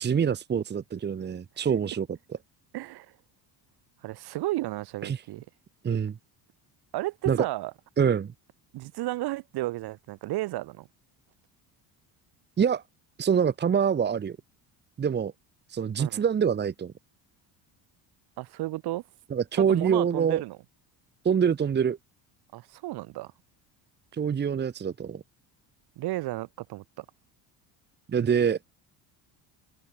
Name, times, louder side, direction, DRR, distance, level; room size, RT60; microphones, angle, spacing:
voice 1, 0.0-2.1 5.0-5.2 5.8-6.2 7.3-7.4 8.0-8.3 12.6-12.8 13.2-14.4 15.0-15.3 15.7-16.9 19.3-20.4 21.2-22.0 24.1-25.2 28.1-28.6, right 7 dB, 25° right, 1.4 m, -25 dB
voice 2, 2.7-3.1 4.0-5.4 6.9-7.7 8.7-10.9 16.0-16.2 18.4-19.0 19.5-20.6 22.5-23.3 26.0-27.0, right 17 dB, 65° right, 3.2 m, -33 dB
cardioid pair, 150°, 41 cm